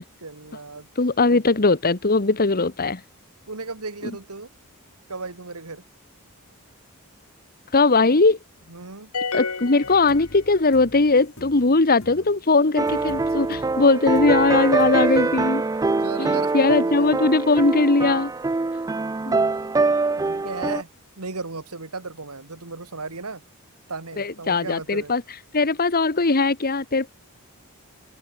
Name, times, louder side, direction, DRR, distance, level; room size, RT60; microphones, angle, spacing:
voice 1, 0.2-0.9 1.3-1.4 3.5-4.5 5.1-5.8 8.7-9.1 15.8-17.2 18.9-19.6 20.2-20.9 21.2-23.4 23.9-25.1, right 3 dB, 90° right, 2.5 m, -36 dB
voice 2, 1.0-3.0 7.7-8.4 9.3-15.6 16.2-18.3 19.3-19.4 24.2-25.2 25.5-27.1, left 3 dB, 45° left, 1.3 m, -20 dB
sound 1, 9.1-10.9, left 4 dB, 90° left, 3.2 m, -30 dB
sound 2, 9.8-15.1, left 1 dB, 65° left, 2.8 m, -45 dB
sound 3, 12.8-20.8, right 3 dB, 15° right, 0.3 m, -23 dB
open air
head